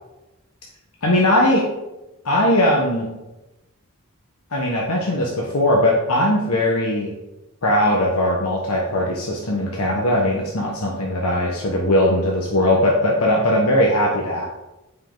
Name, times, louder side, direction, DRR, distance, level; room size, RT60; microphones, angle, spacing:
voice 1, 1.0-1.7 2.2-3.1 4.5-7.1 7.6-14.4, left 1 dB, 85° left, -2 dB, 1.2 m, -19 dB
9.4 x 5.6 x 3.9 m, 1.0 s
head